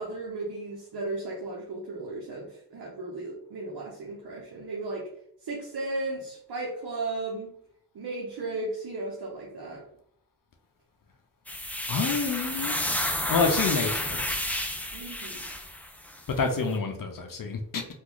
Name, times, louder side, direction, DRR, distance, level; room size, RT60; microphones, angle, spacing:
voice 1, 0.0-5.1 5.4-7.6 7.9-9.8 14.9-15.4, right 2 dB, 65° right, -2 dB, 0.9 m, -35 dB
sound 1, 11.5-16.2, left 1 dB, 5° left, 0.5 m, -31 dB
voice 2, 11.9-12.7 13.3-14.4 16.3-17.8, left 4 dB, 55° left, 4 dB, 0.7 m, -28 dB
2.9 x 2.5 x 3.8 m, 0.68 s
cardioid pair, 50°, 40 cm